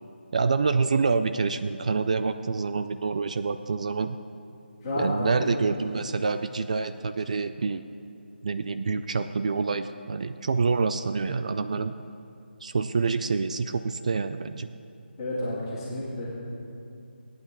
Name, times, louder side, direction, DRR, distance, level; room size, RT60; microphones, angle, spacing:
voice 1, 0.3-4.2 4.9-7.8 8.4-11.9 12.6-14.7, right 4 dB, 40° right, 10 dB, 0.3 m, -27 dB
voice 2, 4.8-5.6 15.2-16.3, left 1 dB, 20° left, -7 dB, 2.0 m, -30 dB
17.0 x 9.1 x 3.6 m, 2.6 s
figure-of-eight pair, 155°, 6 cm